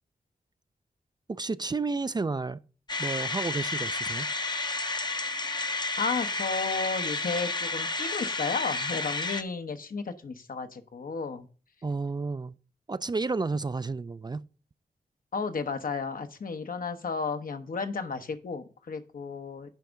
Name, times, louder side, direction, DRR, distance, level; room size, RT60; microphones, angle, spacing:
voice 1, 1.3-2.6 3.0-4.3 11.8-12.6 12.9-14.4, right 3 dB, 25° right, 0.4 m, -31 dB
sound 1, 2.9-9.4, left 3 dB, 30° left, 0.7 m, -31 dB
voice 2, 6.0-11.5 15.3-19.7, left 4 dB, 65° left, 1.0 m, -33 dB
10.5 x 3.5 x 6.2 m
cardioid pair, 55°, 15 cm